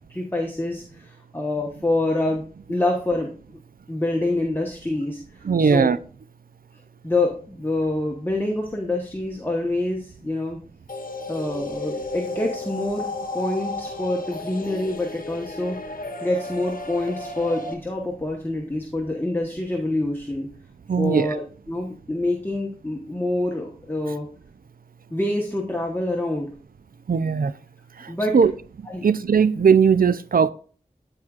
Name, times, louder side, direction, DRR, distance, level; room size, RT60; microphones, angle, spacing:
voice 1, 0.1-2.4 2.7-3.3 3.9-5.9 7.0-10.6 11.3-13.1 13.3-15.8 16.2-20.5 21.0-24.3 25.1-26.5 28.1-28.4 28.9-29.1, left 2 dB, 15° left, 1.1 m, -26 dB
voice 2, 5.4-6.0 20.9-21.3 27.1-27.5 28.3-28.5 29.0-30.5, right 6 dB, 75° right, 0.4 m, -18 dB
sound 1, 10.9-17.7, left 2 dB, 65° left, 0.9 m, -33 dB
13.0 x 4.8 x 2.4 m
wide cardioid pair, 50°, 15 cm